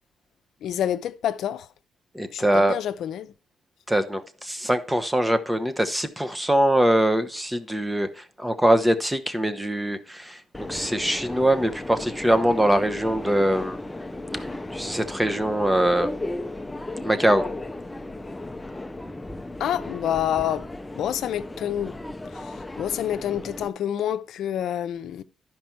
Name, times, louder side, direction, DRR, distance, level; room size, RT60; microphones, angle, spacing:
voice 1, 0.6-1.7 2.3-3.3 19.6-20.7 21.0-21.9 22.2-25.2, left 10 dB, 75° left, 0.6 m, -28 dB
voice 2, 2.1-2.8 3.9-10.4 10.7-13.8 14.7-16.1 17.0-17.4, right 1 dB, 10° right, 1.0 m, -22 dB
Subway metro underground, 10.5-23.7, left 2 dB, 10° left, 0.6 m, -35 dB
12.0 x 5.2 x 4.6 m
cardioid pair, 90°, 0 cm